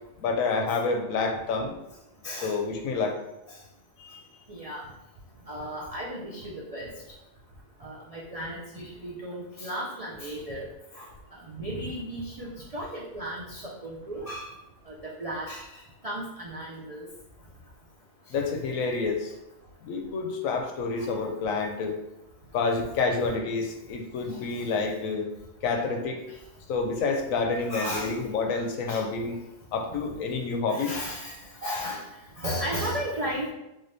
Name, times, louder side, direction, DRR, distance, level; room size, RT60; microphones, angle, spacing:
voice 1, 0.2-1.8 2.4-3.2 4.0-4.3 18.3-19.3 19.8-22.0 22.5-25.3 25.6-26.2 26.7-29.4 29.7-30.9, left 4 dB, 75° left, 4 dB, 1.0 m, -28 dB
voice 2, 2.2-2.6 3.5-3.6 4.5-4.9 5.5-6.9 7.8-10.7 10.9-11.1 11.4-14.5 14.9-17.1 18.3-18.4 21.0-21.1 24.3-24.7 26.3-26.4 27.7-28.2 28.9-29.0 30.7-32.1 32.4-33.5, equal, 65° right, -5 dB, 0.3 m, -35 dB
3.8 x 3.3 x 2.6 m, 0.92 s
omnidirectional pair, 1.5 m